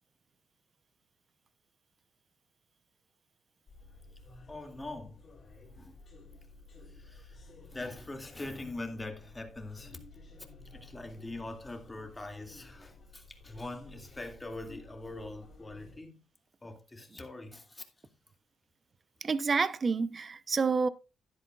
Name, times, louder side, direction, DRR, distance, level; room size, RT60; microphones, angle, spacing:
sound 1, 3.7-16.0, left 2 dB, 40° left, 3.4 m, -53 dB
voice 1, 4.5-5.3 5.7-6.0 6.9-10.0 10.7-16.2 16.6-18.1, left 2 dB, 15° left, 2.3 m, -43 dB
voice 2, 19.2-20.9, right 5 dB, 35° right, 0.8 m, -28 dB
12.0 x 10.5 x 2.4 m
cardioid pair, 90°, 0 cm